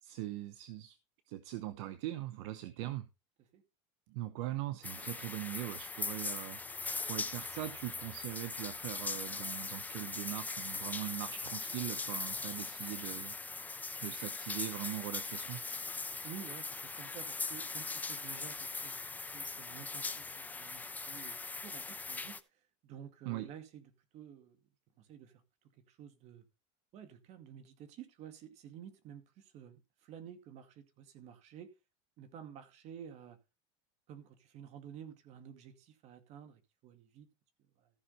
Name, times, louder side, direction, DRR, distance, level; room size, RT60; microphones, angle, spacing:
voice 1, 0.0-1.0 1.3-3.0 4.1-13.6 14.0-15.6 23.2-23.5, right 15 dB, 70° right, 0.9 m, -41 dB
sound 1, 4.8-22.4, left 4 dB, 10° left, 0.7 m, -40 dB
voice 2, 16.2-19.1 19.3-21.4 21.6-24.6 25.0-25.3 25.8-26.4 26.9-31.7 32.2-33.4 34.1-37.3 37.8-37.9, right 9 dB, 50° right, 2.2 m, -51 dB
14.5 x 6.1 x 4.2 m
supercardioid pair, 130°, 15 cm